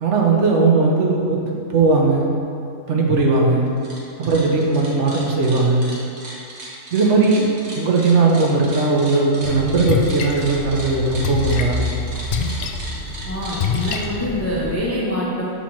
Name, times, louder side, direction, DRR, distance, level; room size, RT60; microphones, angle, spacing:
voice 1, 0.0-2.3 2.9-3.7 4.2-5.9 6.9-11.8, right 3 dB, 65° right, -1 dB, 1.1 m, -18 dB
sound 1, 3.7-4.0 4.2-14.0, right 1 dB, 90° right, 1.6 m, -36 dB
Splash splatter, 9.4-14.7, left 4 dB, 65° left, 0.6 m, -26 dB
voice 2, 13.3-15.5, equal, 15° left, -6 dB, 0.6 m, -25 dB
7.2 x 2.9 x 5.8 m, 2.5 s
omnidirectional pair, 1.4 m